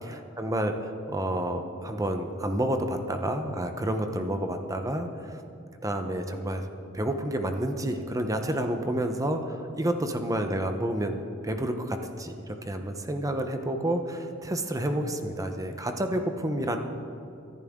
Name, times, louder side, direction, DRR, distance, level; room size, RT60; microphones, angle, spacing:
voice 1, 0.1-5.4 5.8-6.6 6.9-16.8, right 1 dB, 15° right, 6 dB, 0.8 m, -29 dB
23.5 x 11.0 x 3.7 m, 2.5 s
head